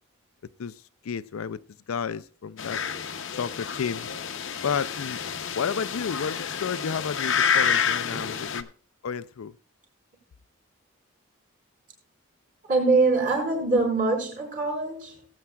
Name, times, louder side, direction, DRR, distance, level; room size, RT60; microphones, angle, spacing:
voice 1, 1.0-1.6 1.9-2.8 3.3-4.1 4.6-5.2 5.5-8.7 9.0-9.5, left 6 dB, 90° left, 0.4 m, -31 dB
sound 1, 2.6-8.6, left 7 dB, 65° left, 0.8 m, -28 dB
voice 2, 8.1-8.4 12.6-15.3, right 3 dB, 40° right, 4.8 m, -24 dB
18.5 x 8.6 x 2.3 m
head